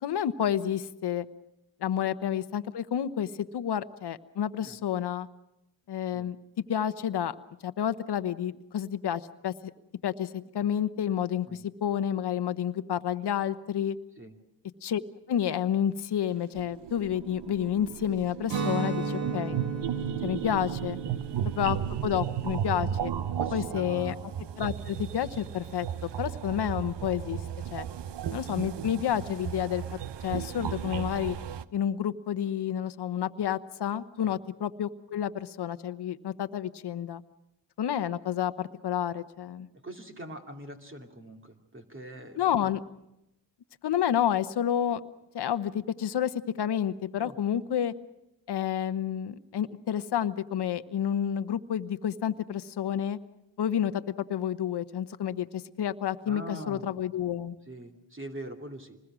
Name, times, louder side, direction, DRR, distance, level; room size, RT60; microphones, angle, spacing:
voice 1, 0.0-1.3 1.8-5.3 5.9-6.4 6.7-7.3 7.6-9.7 10.0-14.0 14.8-15.0 15.3-19.6 20.2-21.0 21.4-23.1 23.5-24.1 24.6-25.9 26.2-27.4 27.7-27.9 28.3-29.8 30.2-31.4 31.7-37.2 37.8-39.7 42.4-42.8 43.8-45.0 45.3-47.9 48.5-53.2 53.6-54.0 54.3-57.5, left 9 dB, 60° left, 11 dB, 1.1 m, -30 dB
sound 1, 16.3-31.7, right 9 dB, 65° right, 0.9 m, -35 dB
Guitar, 18.5-24.3, right 4 dB, 85° right, 3.1 m, -36 dB
voice 2, 23.4-24.2 34.2-34.3 39.8-42.7 47.2-47.3 56.3-56.9 57.7-59.0, right 1 dB, 25° right, 3 dB, 2.6 m, -43 dB
26.5 x 20.5 x 6.2 m, 0.88 s
cardioid pair, 75°, 45 cm